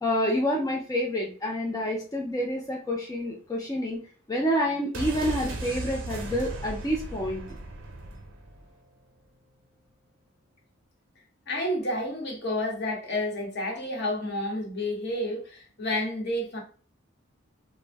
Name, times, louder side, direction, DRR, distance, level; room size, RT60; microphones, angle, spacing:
voice 1, 0.0-4.0 4.3-7.4, equal, 20° left, 0.3 m, -28 dB
sound 1, 4.9-8.7 9.0-9.1, right 2 dB, 70° right, 0.6 m, -36 dB
voice 2, 11.5-16.6, left 1 dB, 55° left, 0.9 m, -30 dB
2.5 x 2.1 x 3.2 m
head